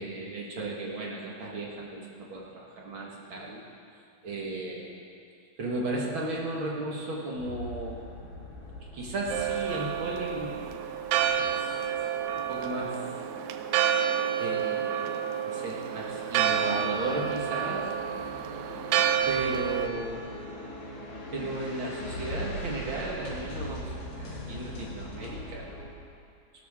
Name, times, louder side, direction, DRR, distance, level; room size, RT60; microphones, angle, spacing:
voice 1, 0.0-3.6 4.2-5.0 5.6-8.0 8.9-10.7 11.3-11.9 12.5-13.1 14.4-15.1 15.4-17.9 19.3-20.2 21.3-25.7, right 2 dB, 45° right, -3 dB, 1.8 m, -35 dB
sound 1, 7.4-25.9, left 1 dB, 65° left, 3.7 m, -41 dB
Church bell, 9.3-19.9, right 9 dB, 80° right, 2.2 m, -29 dB
18.0 x 13.5 x 3.7 m, 2.4 s
omnidirectional pair, 4.3 m